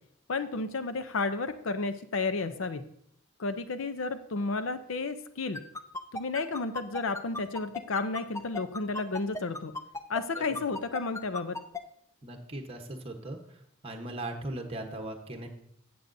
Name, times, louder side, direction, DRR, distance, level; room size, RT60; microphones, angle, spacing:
voice 1, 0.3-2.8 3.4-5.6 6.1-9.7 10.1-11.6, left 3 dB, 65° left, 11 dB, 0.6 m, -32 dB
sound 1, 5.5-11.8, left 2 dB, 15° left, 0.5 m, -35 dB
voice 2, 12.2-13.4 13.8-15.5, right 1 dB, 25° right, 4 dB, 1.1 m, -38 dB
13.5 x 7.8 x 2.7 m, 0.68 s
head